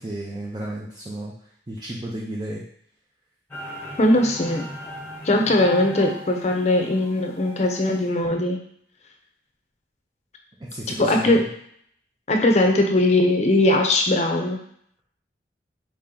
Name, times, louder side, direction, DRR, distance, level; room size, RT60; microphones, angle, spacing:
voice 1, 0.0-1.3 1.7-2.6 10.6-11.5, right 1 dB, 25° right, -4 dB, 0.5 m, -33 dB
sound 1, 3.5-8.0, equal, 10° left, 1.0 m, -38 dB
voice 2, 4.0-4.6 5.2-8.6 11.0-11.4 12.3-14.6, left 1 dB, 40° left, 2 dB, 0.6 m, -20 dB
4.3 x 2.9 x 3.7 m, 0.66 s
head